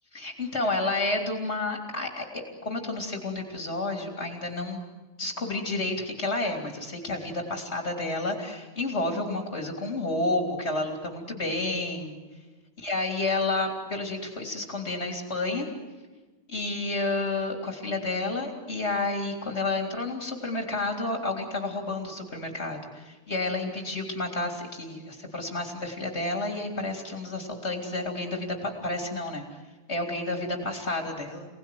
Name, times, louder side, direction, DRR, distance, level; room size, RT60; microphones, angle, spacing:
voice 1, 0.1-4.8 5.2-12.2 12.8-15.7 16.5-29.4 29.9-31.5, left 2 dB, 65° left, 2 dB, 3.6 m, -30 dB
29.0 x 19.0 x 9.3 m, 1.3 s
omnidirectional pair, 1.2 m